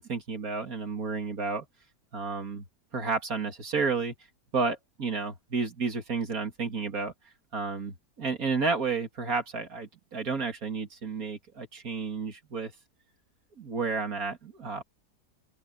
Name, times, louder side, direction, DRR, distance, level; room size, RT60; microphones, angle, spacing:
voice 1, 0.0-1.7 2.1-2.6 2.9-4.1 4.5-7.1 7.5-12.7 13.6-14.8, right 4 dB, 55° right, 2.7 m, -31 dB
open air
omnidirectional pair, 1.8 m